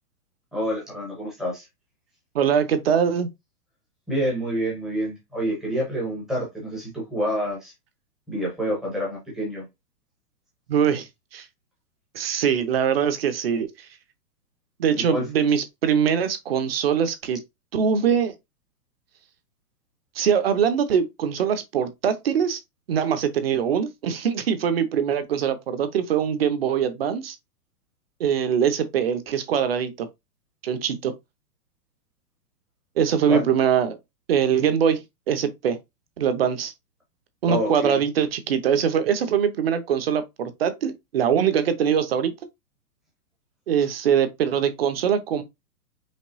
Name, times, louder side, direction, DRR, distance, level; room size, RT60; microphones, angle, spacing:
voice 1, 0.5-1.6 4.1-7.7 8.3-9.7 14.9-15.3 33.3-33.4 37.5-38.0, equal, ahead, 0.7 m, -28 dB
voice 2, 2.3-3.3 10.7-11.5 12.1-13.7 14.8-17.4 17.7-18.3 20.2-22.6 22.9-27.4 28.2-30.1 30.6-31.1 33.0-34.0 34.3-35.8 36.2-36.7 37.4-42.3 43.7-45.4, right 8 dB, 40° right, 0.8 m, -22 dB
5.3 x 3.2 x 2.6 m
hypercardioid pair, 170°, 46 cm